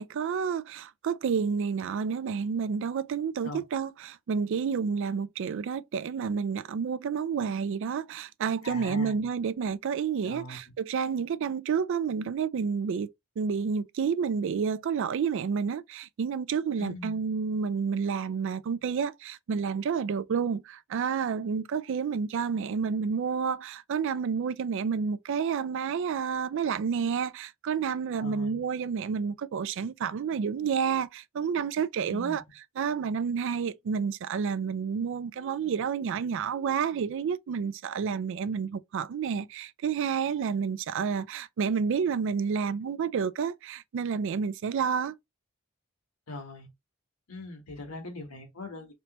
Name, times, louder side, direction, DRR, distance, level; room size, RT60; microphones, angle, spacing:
voice 1, 0.0-13.1 13.4-45.1, right 6 dB, 60° right, 0.3 m, -30 dB
voice 2, 8.6-9.2 10.2-10.6 16.8-17.1 28.2-28.6 32.1-32.4 46.3-46.7 47.3-48.9, left 2 dB, 90° left, 1.4 m, -41 dB
3.3 x 2.8 x 2.9 m
head